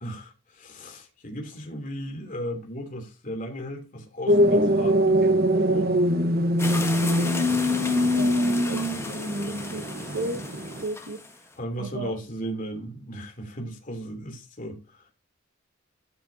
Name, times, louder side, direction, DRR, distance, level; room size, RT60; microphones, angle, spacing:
voice 1, 0.0-5.2 5.6-6.0 7.3-8.4 11.6-15.1, equal, 40° left, 2.9 m, -36 dB
sound 1, 4.3-10.8, equal, 50° right, 1.0 m, -23 dB
sound 2, 6.6-11.5, left 2 dB, 15° left, 1.5 m, -35 dB
voice 2, 7.7-9.9 10.1-10.4 10.8-11.2 11.8-12.1, right 2 dB, 85° right, 1.5 m, -35 dB
12.5 x 6.6 x 2.7 m
head